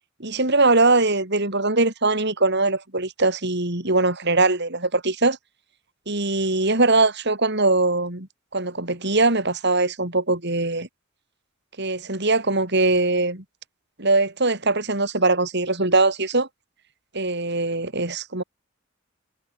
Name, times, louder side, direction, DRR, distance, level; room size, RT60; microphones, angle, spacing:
voice 1, 0.2-5.4 6.1-8.3 8.5-10.9 11.8-13.4 14.0-16.5 17.1-18.4, right 2 dB, 55° right, 5.8 m, -21 dB
head